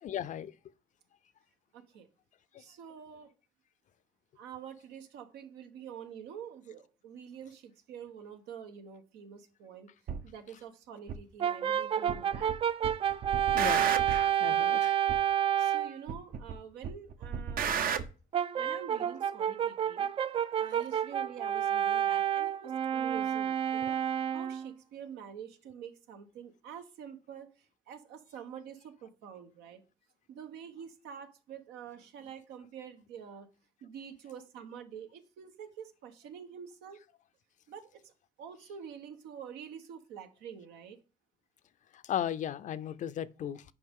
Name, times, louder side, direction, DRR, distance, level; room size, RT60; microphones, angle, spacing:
voice 1, 0.0-0.5 2.5-2.6 13.5-14.0 14.4-15.0 17.9-18.0 41.9-43.6, left 10 dB, 50° left, 0.5 m, -36 dB
voice 2, 1.7-2.1 2.6-3.3 4.4-9.9 10.2-12.5 14.4-14.6 15.6-17.8 18.5-20.1 20.6-24.0 24.3-27.5 27.9-29.8 30.3-33.5 33.8-37.0 37.7-38.1 38.4-41.0, right 8 dB, 90° right, 1.1 m, -47 dB
sound 1, 10.1-10.2 11.1-11.2 12.1-12.5 12.8-14.3 15.1-15.2 16.1-16.5 16.8-18.0, right 7 dB, 60° right, 0.7 m, -33 dB
Brass instrument, 11.4-16.0 18.3-24.7, right 10 dB, 35° right, 0.3 m, -29 dB
7.7 x 5.0 x 3.6 m
cardioid pair, 110°, 17 cm